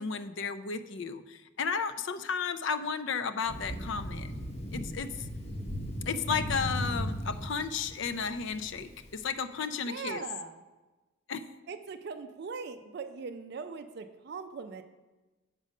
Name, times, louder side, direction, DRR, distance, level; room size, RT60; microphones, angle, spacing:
voice 1, 0.0-4.3 4.7-5.1 6.1-10.2 11.3-11.5, left 5 dB, 60° left, 10 dB, 0.4 m, -33 dB
Thunder, 3.5-9.2, equal, 30° left, 0.9 m, -37 dB
voice 2, 9.8-10.6 11.7-14.8, right 5 dB, 50° right, 9 dB, 0.4 m, -40 dB
7.5 x 5.0 x 5.3 m, 1.2 s
head